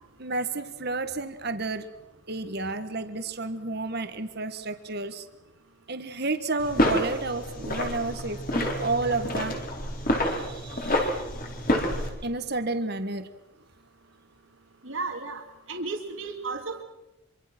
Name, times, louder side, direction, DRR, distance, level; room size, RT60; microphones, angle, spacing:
voice 1, 0.2-1.8 2.3-5.2 5.9-9.6 10.3-11.1 12.2-13.3, right 3 dB, 50° right, 9 dB, 1.7 m, -31 dB
sound 1, 6.6-12.1, left 1 dB, 40° left, 4.6 m, -28 dB
voice 2, 11.7-12.0 14.8-15.4 15.7-16.8, right 3 dB, 65° right, 3 dB, 2.6 m, -34 dB
26.0 x 25.0 x 6.2 m, 0.97 s
head